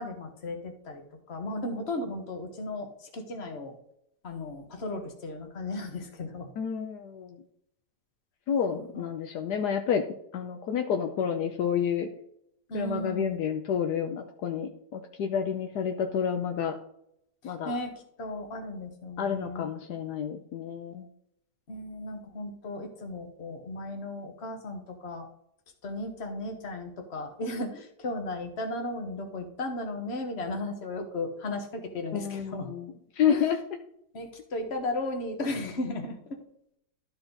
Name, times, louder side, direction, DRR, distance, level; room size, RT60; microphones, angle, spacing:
voice 1, 0.0-3.8 4.2-6.5 8.7-9.1 12.7-13.5 17.4-19.7 21.7-25.3 25.8-32.7 33.3-33.4 34.1-36.4, left 2 dB, 40° left, 4 dB, 1.5 m, -35 dB
voice 2, 6.6-7.4 8.5-10.0 10.3-12.1 12.7-16.8 17.4-17.8 19.2-21.1 32.1-33.6, left 7 dB, 70° left, 5 dB, 1.3 m, -29 dB
12.5 x 4.4 x 3.9 m, 0.73 s
omnidirectional pair, 1.8 m